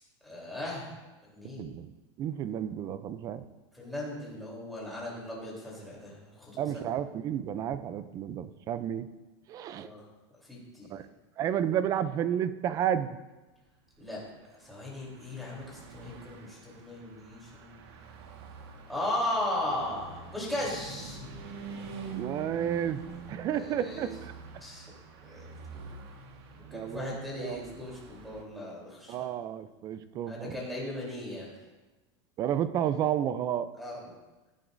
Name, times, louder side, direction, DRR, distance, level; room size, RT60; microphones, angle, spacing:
voice 1, 0.2-1.6 3.7-6.8 9.7-10.0 10.3-11.0 14.0-14.2 14.5-17.8 18.9-21.2 23.5-24.1 24.6-24.9 25.2-25.8 26.5-29.3 30.3-31.5 33.8-34.0, left 1 dB, ahead, -6 dB, 3.3 m, -37 dB
voice 2, 1.6-1.9 2.2-3.4 6.6-9.1 9.5-9.9 10.9-11.1 11.4-13.2 22.2-23.0 23.3-24.3 26.7-27.7 29.1-30.6 32.4-33.7, right 10 dB, 25° right, 13 dB, 0.4 m, -31 dB
Car passing by / Truck, 14.1-28.4, right 4 dB, 60° right, 1.6 m, -46 dB
16.5 x 11.0 x 2.6 m, 1.1 s
supercardioid pair, 165°, 15 cm